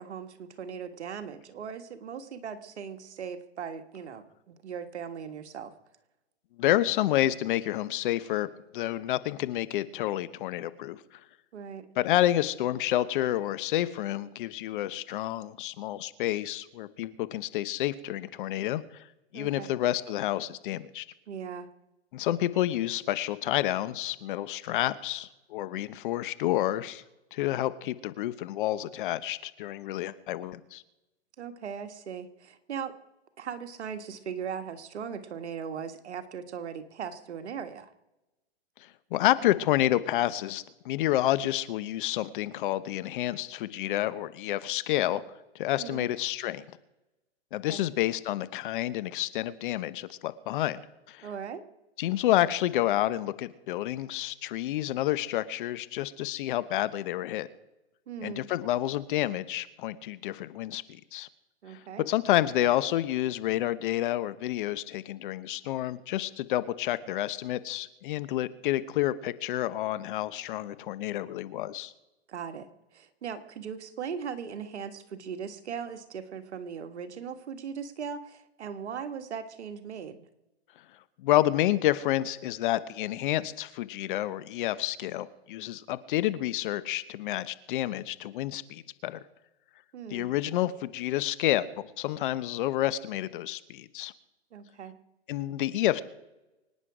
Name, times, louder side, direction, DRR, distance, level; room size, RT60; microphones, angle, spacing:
voice 1, 0.0-5.7 11.5-11.9 19.3-19.7 21.3-21.7 31.4-33.0 33.4-37.9 45.8-46.1 47.7-47.8 51.2-51.6 58.1-58.5 61.6-62.1 72.3-80.2 89.9-90.3 94.5-95.0, right 7 dB, 75° right, 9 dB, 1.7 m, -39 dB
voice 2, 6.6-11.0 12.0-19.1 19.3-21.0 22.1-27.0 27.3-30.8 39.1-45.2 45.5-46.6 47.5-50.8 51.1-51.3 52.0-57.5 58.2-61.3 61.7-61.8 62.1-71.9 81.2-89.2 90.1-94.1 95.3-96.0, left 14 dB, 45° left, 15 dB, 1.0 m, -29 dB
24.5 x 9.7 x 4.9 m, 0.99 s
hypercardioid pair, 135°, 34 cm